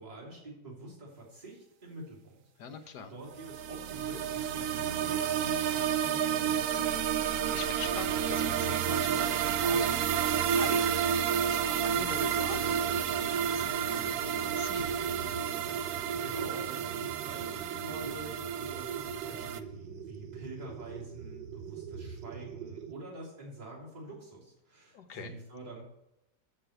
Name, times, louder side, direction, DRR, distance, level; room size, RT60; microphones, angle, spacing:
voice 1, 0.0-2.4 2.8-7.0 15.9-25.8, right 2 dB, 25° right, -7 dB, 3.1 m, -46 dB
voice 2, 2.6-3.1 7.2-15.3 24.9-25.3, left 6 dB, 70° left, 7 dB, 1.5 m, -44 dB
sound 1, 3.4-19.6, right 8 dB, 70° right, 0.9 m, -30 dB
sound 2, 12.5-22.9, right 7 dB, 90° right, 1.4 m, -44 dB
7.5 x 6.7 x 7.8 m, 0.87 s
omnidirectional pair, 1.9 m